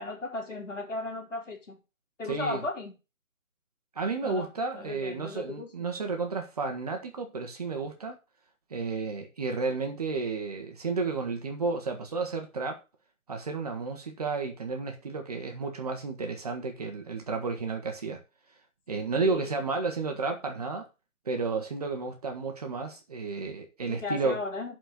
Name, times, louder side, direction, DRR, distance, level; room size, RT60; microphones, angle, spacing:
voice 1, 0.0-1.8 2.2-2.9 4.2-5.9 19.2-19.5 23.9-24.8, left 2 dB, 55° left, 1 dB, 3.7 m, -36 dB
voice 2, 2.3-2.6 3.9-8.1 8.7-12.8 13.3-18.2 18.9-20.9 21.2-24.4, right 4 dB, 25° right, 3 dB, 1.3 m, -32 dB
11.0 x 4.5 x 6.8 m, 0.29 s
figure-of-eight pair, 150°, 43 cm